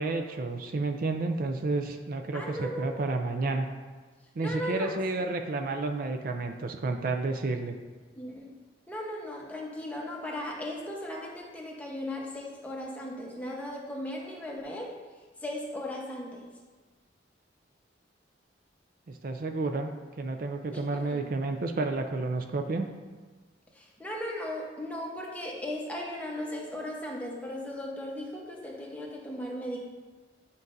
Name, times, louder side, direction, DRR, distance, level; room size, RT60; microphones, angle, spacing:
voice 1, 0.0-3.7 4.4-7.8 19.1-19.9 20.2-22.9, right 3 dB, 50° right, 5 dB, 0.4 m, -31 dB
voice 2, 2.3-3.0 4.4-5.0 8.2-8.5 8.9-14.9 15.4-16.4 20.7-21.2 23.7-29.8, left 1 dB, 10° left, -2 dB, 1.0 m, -37 dB
9.6 x 5.3 x 2.6 m, 1.4 s
head